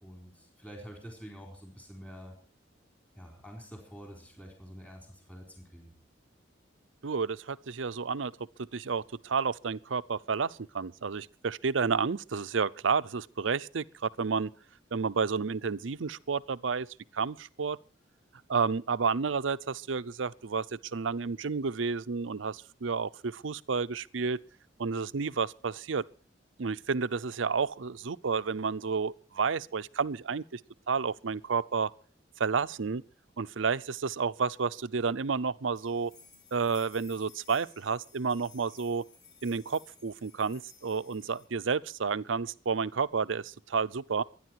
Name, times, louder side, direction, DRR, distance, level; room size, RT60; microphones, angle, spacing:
voice 1, 0.0-2.4 3.1-5.9, equal, 10° left, 4.3 m, -47 dB
voice 2, 7.0-8.3 8.7-14.5 14.9-16.9 17.1-17.8 18.5-24.4 24.8-26.0 26.6-30.6 30.9-31.9 32.4-33.0 33.4-36.1 36.5-39.0 39.4-44.2, right 5 dB, 80° right, 0.6 m, -31 dB
sound 1, 35.7-41.5, left 6 dB, 60° left, 2.8 m, -57 dB
24.0 x 10.5 x 4.6 m
head